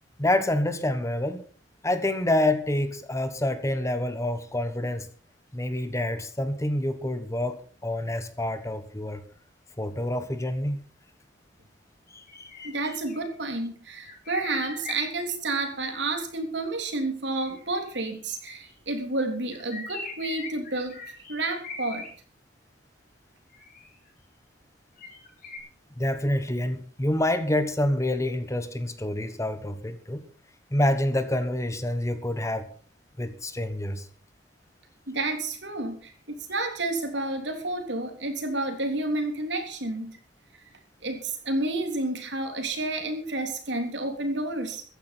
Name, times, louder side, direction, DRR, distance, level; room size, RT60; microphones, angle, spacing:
voice 1, 0.2-1.4 1.8-5.1 5.5-9.2 9.8-10.8 12.1-12.7 26.0-30.2 30.7-32.7 33.2-34.1, left 1 dB, 15° left, 1.2 m, -27 dB
sound 1, 12.3-13.3 14.0-15.5 17.4-18.7 19.5-22.1 23.5-24.1 25.0-25.6, left 3 dB, 50° left, 6.1 m, -41 dB
voice 2, 12.6-21.0 21.3-22.1 35.1-40.1 41.0-44.8, right 2 dB, 70° right, 3.5 m, -30 dB
15.0 x 10.5 x 6.0 m
head